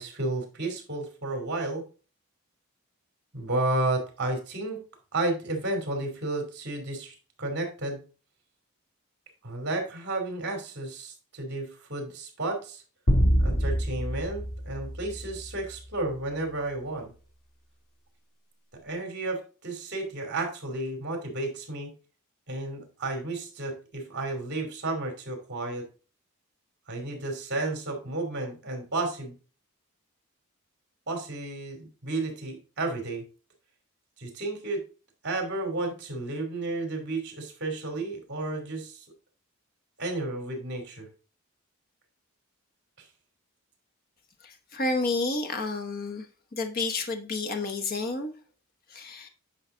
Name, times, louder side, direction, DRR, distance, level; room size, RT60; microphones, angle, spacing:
voice 1, 0.0-1.9 3.3-4.8 5.1-8.0 9.4-12.8 13.4-17.1 18.8-21.9 22.5-25.8 26.9-29.3 31.1-33.2 34.2-34.8 35.2-39.0 40.0-41.1, right 2 dB, 50° right, 2.9 m, -32 dB
sound 1, 13.1-15.7, equal, 80° left, 2.7 m, -26 dB
voice 2, 44.4-46.3 46.5-48.3 48.9-49.3, left 3 dB, 45° left, 1.0 m, -30 dB
9.9 x 5.7 x 3.8 m
head